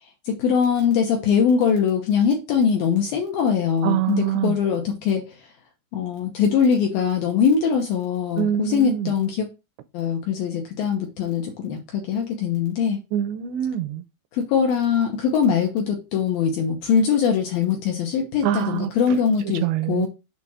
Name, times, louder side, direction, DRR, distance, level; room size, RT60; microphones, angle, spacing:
voice 1, 0.3-5.3 5.9-9.5 9.9-13.0 14.3-20.1, left 7 dB, 80° left, 2.1 m, -22 dB
voice 2, 3.8-4.5 8.4-9.1 13.1-14.0 18.4-18.9 19.6-20.1, right 11 dB, 80° right, 2.7 m, -24 dB
7.5 x 2.9 x 6.1 m
omnidirectional pair, 5.4 m